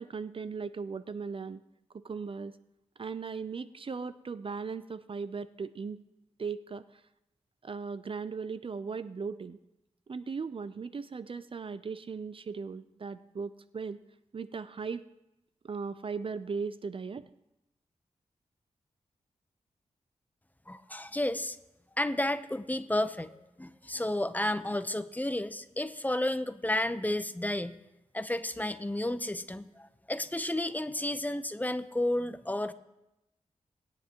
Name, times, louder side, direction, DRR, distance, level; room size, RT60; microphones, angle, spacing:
voice 1, 0.0-1.6 1.9-2.6 3.0-6.0 6.4-7.0 7.6-9.6 10.1-14.0 14.3-15.1 15.6-17.2, right 5 dB, 45° right, 13 dB, 0.5 m, -38 dB
voice 2, 20.7-21.6 22.0-27.8 28.1-32.7, left 1 dB, 15° left, 12 dB, 0.8 m, -32 dB
20.0 x 9.8 x 3.0 m, 0.91 s
cardioid pair, 50°, 12 cm